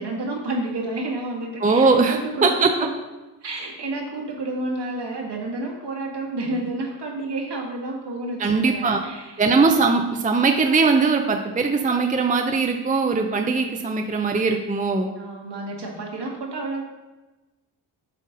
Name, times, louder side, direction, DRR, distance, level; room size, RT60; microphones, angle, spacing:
voice 1, 0.0-2.9 3.4-9.4 15.2-16.8, right 2 dB, 65° right, -1 dB, 1.8 m, -30 dB
voice 2, 1.6-2.7 8.4-9.0 9.4-15.1, right 4 dB, 20° right, 4 dB, 0.6 m, -20 dB
7.6 x 3.9 x 3.8 m, 1.1 s
supercardioid pair, 50°, 44 cm